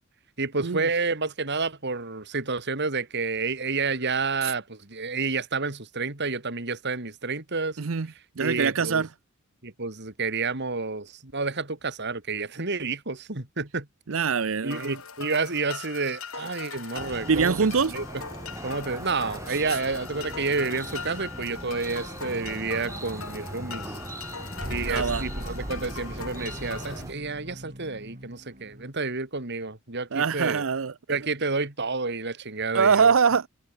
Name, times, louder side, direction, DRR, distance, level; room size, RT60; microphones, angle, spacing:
voice 1, 0.4-7.8 8.4-9.0 9.6-13.9 14.6-18.0 18.6-23.9 24.7-30.6 31.1-33.1, right 4 dB, 55° right, 3.1 m, -30 dB
voice 2, 8.4-9.1 14.1-15.0 17.3-17.9 24.9-25.2 30.1-30.9 32.7-33.5, right 5 dB, 70° right, 0.7 m, -23 dB
sound 1, 14.7-27.1, left 6 dB, 80° left, 5.8 m, -41 dB
sound 2, 16.9-27.1, right 1 dB, 15° right, 2.9 m, -40 dB
sound 3, 22.3-28.9, equal, 40° right, 5.9 m, -40 dB
head